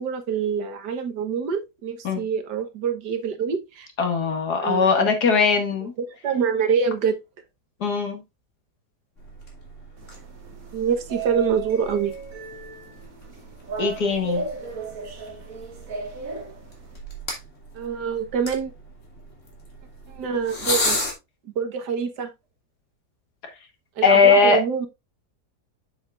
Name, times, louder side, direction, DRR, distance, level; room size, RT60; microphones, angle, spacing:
voice 1, 0.0-3.9 4.6-5.1 6.0-7.2 10.7-12.2 17.8-18.7 20.1-21.0 21.5-22.3 24.0-24.9, right 6 dB, 80° right, 1.8 m, -26 dB
voice 2, 4.0-5.9 7.8-8.2 13.8-14.4 24.0-24.6, left 4 dB, 70° left, 2.4 m, -19 dB
sound 1, 9.2-21.1, left 2 dB, 45° left, 3.0 m, -35 dB
sound 2, 10.0-17.0, right 4 dB, 55° right, 2.2 m, -35 dB
7.7 x 7.4 x 2.5 m
omnidirectional pair, 1.8 m